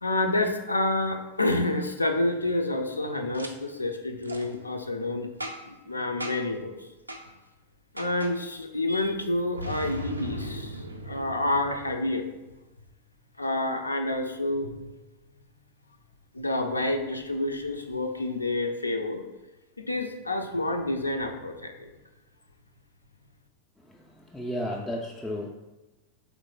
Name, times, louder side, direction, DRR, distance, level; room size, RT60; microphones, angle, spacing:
voice 1, 0.0-5.3 5.6-6.9 7.9-12.3 13.4-14.8 16.3-19.2 19.8-21.9, left 2 dB, 80° left, 5 dB, 0.4 m, -28 dB
Boom, 3.3-3.5 4.2-4.5 5.4-5.8 6.2-6.6 7.1-7.3 8.0-8.4 9.6-12.3, equal, 80° right, 0.4 m, -37 dB
voice 2, 23.9-25.5, left 1 dB, 5° left, -2 dB, 0.4 m, -33 dB
3.6 x 3.1 x 3.7 m, 1.1 s
figure-of-eight pair, 90°, 0 cm